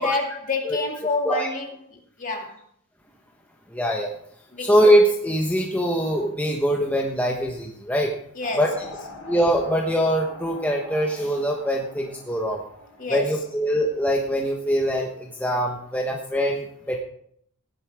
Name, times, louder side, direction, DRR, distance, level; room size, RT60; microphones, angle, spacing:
voice 1, 0.0-1.7 2.2-2.6 4.5-4.7 8.4-8.7 13.0-13.3, left 3 dB, 35° left, 2.4 m, -28 dB
voice 2, 3.7-4.1 4.6-8.1 8.6-8.9 9.2-12.6 13.1-17.0, equal, 5° left, 1.2 m, -23 dB
sound 1, 8.4-14.5, left 1 dB, 70° left, 5.5 m, -43 dB
15.5 x 11.0 x 3.6 m
head